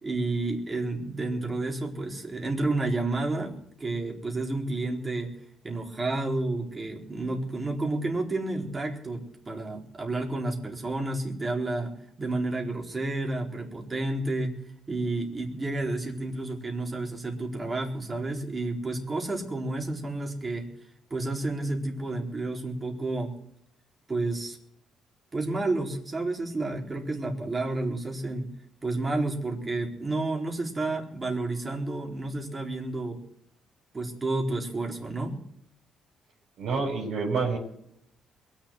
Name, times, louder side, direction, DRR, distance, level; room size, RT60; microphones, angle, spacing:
voice 1, 0.0-3.5 3.8-5.3 5.6-11.9 12.2-14.5 14.9-20.7 21.1-23.3 24.1-24.6 25.3-28.5 28.8-33.2 33.9-35.4, right 2 dB, 25° right, 1 dB, 4.2 m, -30 dB
voice 2, 36.6-37.6, right 4 dB, 80° right, -4 dB, 5.0 m, -27 dB
22.0 x 7.4 x 7.9 m, 0.74 s
cardioid pair, 90°, 0 cm